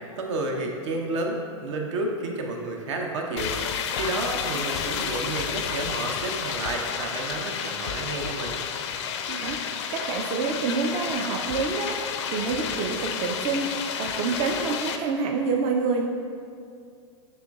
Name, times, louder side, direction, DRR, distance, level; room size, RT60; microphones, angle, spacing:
voice 1, 0.2-3.6 3.9-8.6, right 2 dB, 65° right, 2 dB, 0.7 m, -31 dB
sound 1, 3.4-15.0, left 7 dB, 60° left, 0.4 m, -31 dB
voice 2, 9.3-9.6 9.9-16.0, right 4 dB, 35° right, 2 dB, 0.3 m, -27 dB
6.6 x 3.1 x 2.3 m, 2.3 s
hypercardioid pair, 115°, 16 cm